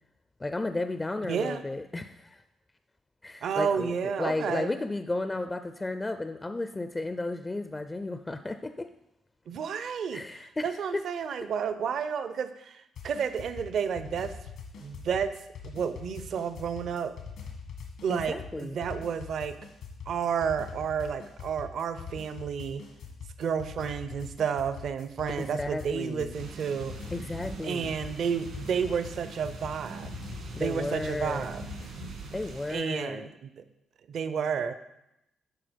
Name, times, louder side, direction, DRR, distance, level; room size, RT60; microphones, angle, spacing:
voice 1, 0.4-2.4 3.2-8.9 10.1-10.7 18.1-18.8 25.4-26.3 27.1-28.0 30.6-31.5 32.3-33.3, left 2 dB, 20° left, 9 dB, 0.4 m, -33 dB
voice 2, 1.3-1.6 3.4-4.7 9.5-14.3 14.8-15.3 15.6-17.1 18.0-19.6 20.1-22.8 23.4-27.0 27.6-30.2 30.6-31.6 32.7-33.6 34.1-34.7, right 7 dB, 65° right, 11 dB, 0.6 m, -31 dB
sound 1, 13.0-32.2, left 5 dB, 80° left, 1.7 m, -43 dB
sound 2, 26.3-32.7, right 4 dB, 80° right, 1.9 m, -43 dB
11.0 x 4.2 x 5.1 m, 0.85 s
cardioid pair, 95°, 0 cm